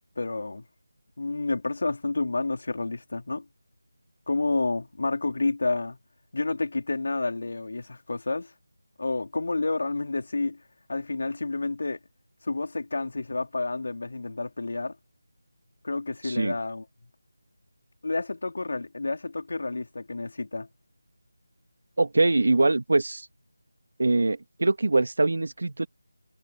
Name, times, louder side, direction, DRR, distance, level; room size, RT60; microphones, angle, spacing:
voice 1, 0.2-0.6 1.2-3.4 4.3-6.0 6.3-8.5 9.0-10.6 10.9-12.0 12.4-14.9 15.8-16.8 18.0-20.7, left 3 dB, 60° left, 4.1 m, -29 dB
voice 2, 16.2-16.6 22.0-23.3 24.0-25.9, right 2 dB, 65° right, 2.4 m, -23 dB
figure-of-eight pair, 165°, 0 cm